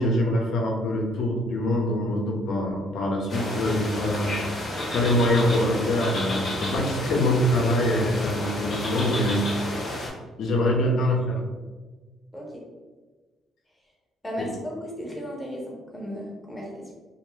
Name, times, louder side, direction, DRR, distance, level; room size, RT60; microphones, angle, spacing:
voice 1, 0.0-9.9 10.4-11.4 14.4-14.5, left 1 dB, 70° left, 0 dB, 0.5 m, -24 dB
sound 1, 3.3-10.1, left 1 dB, 45° left, 0.9 m, -31 dB
voice 2, 12.3-12.6 14.2-16.9, equal, 10° left, -2 dB, 0.7 m, -35 dB
2.2 x 2.2 x 3.0 m, 1.3 s
cardioid pair, 90°, 0 cm